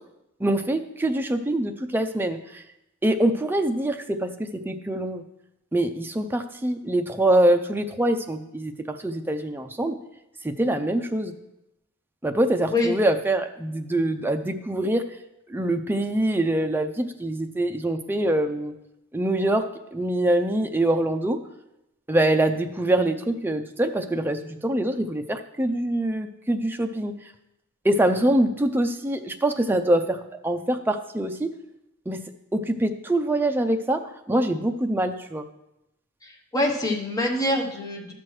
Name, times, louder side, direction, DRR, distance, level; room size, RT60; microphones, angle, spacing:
voice 1, 0.4-2.6 3.0-5.2 5.7-9.9 10.4-11.3 12.2-15.0 15.5-18.7 19.1-19.6 19.9-21.4 22.1-27.1 27.8-31.5 32.1-32.2 32.5-34.0 34.3-35.5, right 1 dB, 10° right, 6 dB, 0.4 m, -24 dB
voice 2, 36.2-38.1, left 1 dB, 15° left, 1 dB, 1.0 m, -25 dB
11.5 x 6.1 x 3.2 m, 0.89 s
head